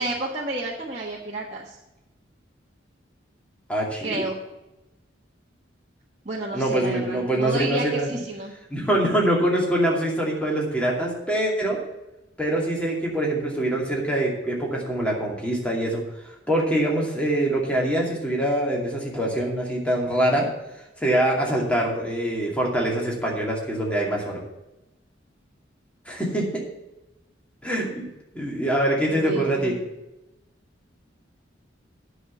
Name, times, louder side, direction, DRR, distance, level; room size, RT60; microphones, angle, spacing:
voice 1, 0.0-1.8 4.0-4.4 6.2-8.5 29.1-29.8, right 2 dB, 35° right, -4 dB, 1.4 m, -31 dB
voice 2, 3.7-4.2 6.5-8.2 8.7-11.8 12.4-20.5 21.0-24.4 26.1-26.6 27.6-28.1 28.3-29.7, right 1 dB, 5° left, -3 dB, 2.6 m, -24 dB
9.8 x 6.4 x 8.2 m, 0.94 s
head